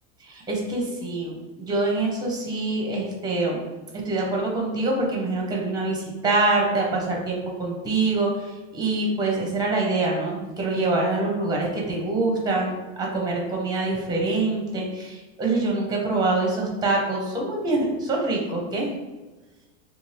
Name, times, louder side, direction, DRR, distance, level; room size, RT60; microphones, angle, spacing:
voice 1, 0.2-3.6 4.0-18.9, right 2 dB, 10° right, -1 dB, 0.7 m, -25 dB
2.6 x 2.4 x 3.2 m, 1.2 s
hypercardioid pair, 115°, 38 cm